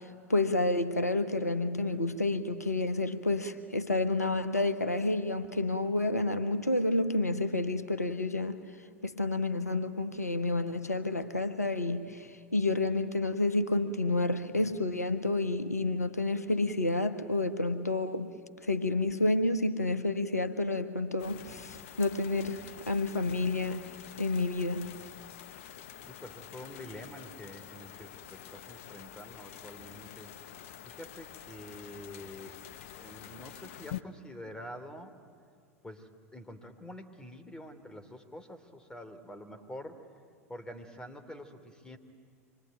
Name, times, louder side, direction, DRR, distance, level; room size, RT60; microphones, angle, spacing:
voice 1, 0.0-25.0, left 2 dB, 90° left, 1.2 m, -30 dB
sound 1, 21.2-34.0, left 10 dB, 55° left, 1.1 m, -47 dB
voice 2, 26.0-30.3 30.8-32.6 32.9-35.1 35.8-40.1 40.5-42.0, equal, 10° left, 2.9 m, -47 dB
26.0 x 23.0 x 9.4 m
figure-of-eight pair, 85°, 8 cm